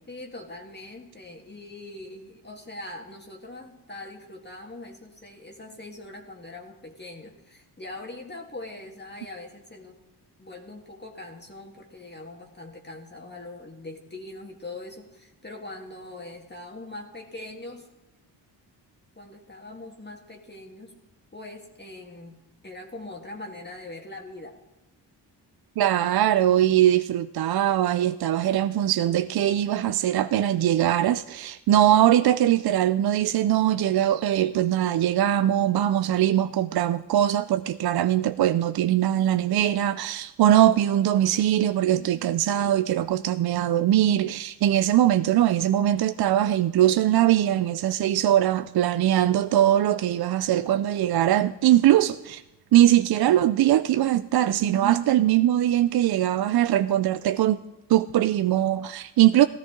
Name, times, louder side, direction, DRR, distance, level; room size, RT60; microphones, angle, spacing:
voice 1, 0.1-10.0 10.4-17.9 19.2-20.9 21.3-22.4 22.6-24.6, left 2 dB, 25° left, 1.9 m, -42 dB
voice 2, 25.8-52.4 52.7-57.6 57.9-59.5, right 12 dB, 60° right, 0.5 m, -21 dB
16.0 x 13.5 x 3.8 m
cardioid pair, 65°, 43 cm